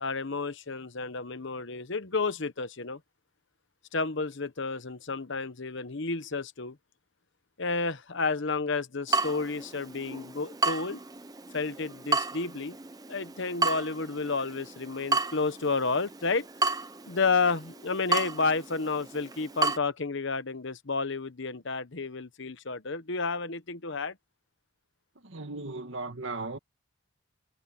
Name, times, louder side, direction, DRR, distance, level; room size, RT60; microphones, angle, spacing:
voice 1, 0.0-3.0 3.9-6.8 7.6-11.0 11.5-12.8 13.1-16.5 17.1-24.2, left 4 dB, 55° left, 1.0 m, -31 dB
Water tap faucet / Drip, 9.1-19.8, right 3 dB, 15° right, 0.7 m, -33 dB
voice 2, 25.2-26.6, right 3 dB, 60° right, 1.8 m, -36 dB
head